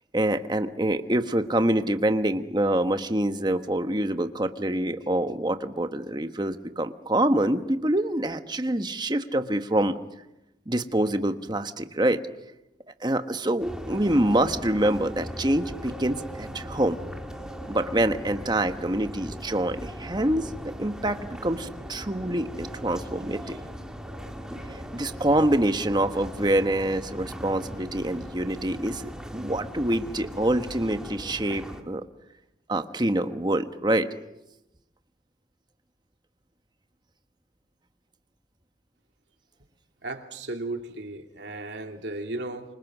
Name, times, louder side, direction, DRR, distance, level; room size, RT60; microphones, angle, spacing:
voice 1, 0.1-10.0 10.7-12.2 13.0-17.0 17.7-20.5 20.8-23.6 24.7-32.0 32.7-34.1, right 1 dB, 25° right, 8 dB, 1.2 m, -26 dB
sound 1, 13.6-31.8, equal, 5° right, 2.0 m, -39 dB
voice 2, 40.0-42.7, right 2 dB, 80° right, 4 dB, 2.8 m, -35 dB
28.5 x 26.0 x 6.2 m, 0.91 s
head